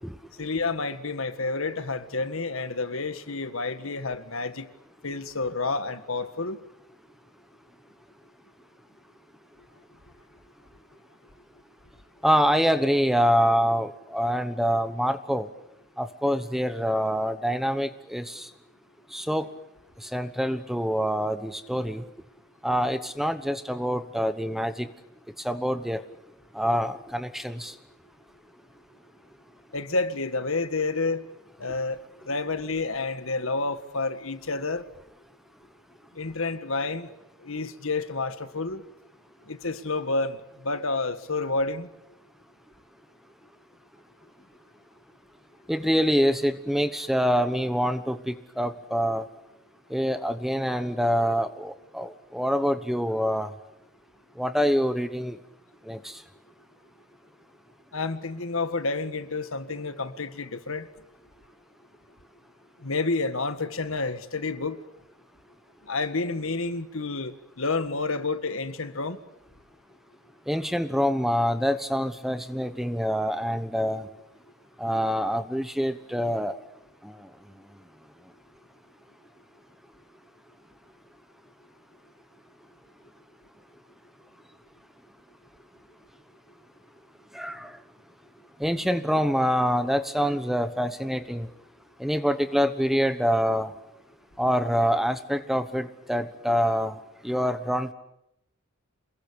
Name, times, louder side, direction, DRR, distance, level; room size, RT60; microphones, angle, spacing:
voice 1, 0.4-4.7 5.0-6.6 29.7-31.2 31.6-34.8 36.2-37.1 37.4-38.8 39.5-41.9 57.9-60.9 62.8-64.8 65.9-69.2, left 3 dB, 65° left, 1.7 m, -29 dB
voice 2, 12.2-15.5 16.0-18.5 19.1-19.5 20.0-22.0 22.6-24.9 25.4-26.0 26.5-27.7 45.7-49.3 49.9-53.5 54.4-55.4 55.9-56.2 70.5-74.1 74.8-76.6 77.0-77.1 87.3-87.8 88.6-91.5 92.0-93.7 94.4-97.0 97.2-97.9, equal, ahead, 1.1 m, -25 dB
28.0 x 22.0 x 8.7 m
head